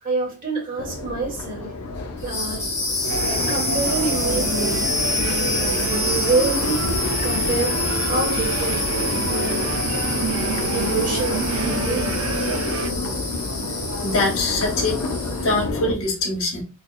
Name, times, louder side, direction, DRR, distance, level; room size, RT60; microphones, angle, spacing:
voice 1, 0.0-1.8 2.2-2.6 3.5-6.9 7.2-8.8 9.3-9.7 10.7-12.8, right 3 dB, 40° right, 1.5 m, -27 dB
Crowd, 0.8-15.9, left 2 dB, 85° left, 0.7 m, -29 dB
sound 1, 2.2-15.7, left 2 dB, 15° left, 1.2 m, -27 dB
sound 2, 3.1-12.9, right 4 dB, 75° right, 0.4 m, -29 dB
voice 2, 14.0-15.0 15.4-16.6, left 2 dB, 65° left, 1.3 m, -23 dB
3.3 x 2.2 x 3.9 m
head